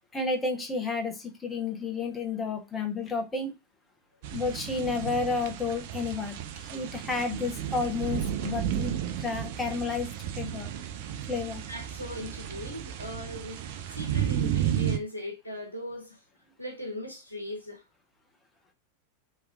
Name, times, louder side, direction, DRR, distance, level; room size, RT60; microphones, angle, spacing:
voice 1, 0.1-3.6 4.3-10.1 10.3-10.7 11.3-11.6, left 4 dB, 15° left, 0.9 m, -31 dB
sound 1, 4.2-15.0, right 10 dB, 50° right, 0.4 m, -33 dB
voice 2, 11.7-13.6 13.9-16.2 16.6-17.8, left 1 dB, 85° left, 0.9 m, -38 dB
3.1 x 2.9 x 2.4 m
figure-of-eight pair, 90°, 0 cm